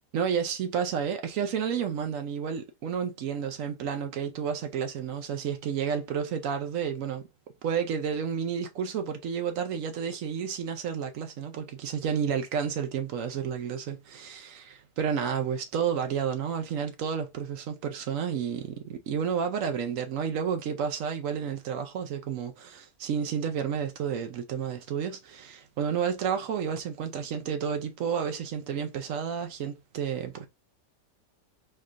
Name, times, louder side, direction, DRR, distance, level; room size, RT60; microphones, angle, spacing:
voice 1, 0.1-7.3 7.6-30.5, right 7 dB, 70° right, 0.8 m, -31 dB
4.4 x 3.0 x 2.4 m
omnidirectional pair, 1.9 m